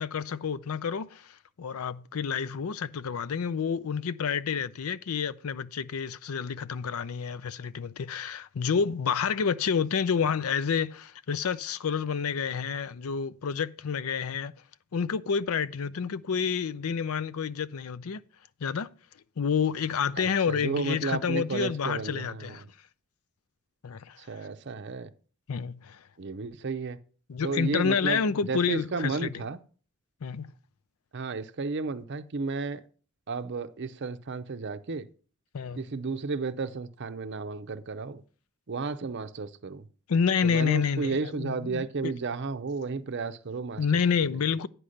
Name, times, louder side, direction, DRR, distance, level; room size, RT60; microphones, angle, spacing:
voice 1, 0.0-14.5 14.9-18.2 18.6-18.9 19.4-22.6 23.8-24.2 25.5-26.0 27.3-29.4 30.2-30.5 35.5-35.8 40.1-42.1 43.8-44.7, left 6 dB, 75° left, 0.5 m, -29 dB
voice 2, 20.2-22.6 24.2-25.1 26.2-27.0 27.4-29.6 31.1-32.8 33.3-35.1 35.8-38.2 38.7-39.9 40.4-43.9, right 4 dB, 50° right, 0.6 m, -33 dB
10.0 x 4.6 x 6.4 m
head